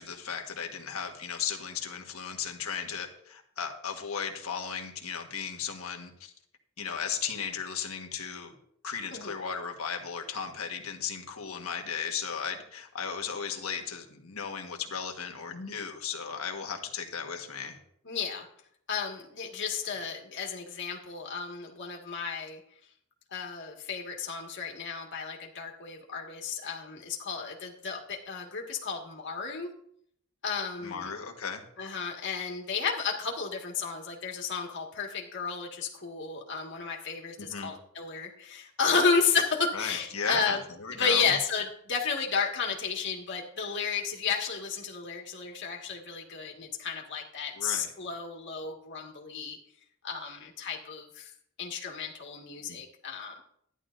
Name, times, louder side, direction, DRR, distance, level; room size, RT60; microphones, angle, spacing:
voice 1, 0.0-6.3 6.8-8.5 8.8-17.8 30.8-31.6 37.4-37.7 39.7-41.3 47.5-47.9 52.7-52.8, left 6 dB, 90° left, 3 dB, 1.5 m, -36 dB
voice 2, 18.1-18.5 18.9-22.6 23.3-29.7 30.4-31.2 31.8-40.6 40.9-49.6 50.0-51.3 51.6-53.4, left 5 dB, 60° left, -1 dB, 1.9 m, -32 dB
13.5 x 11.0 x 2.6 m, 0.67 s
head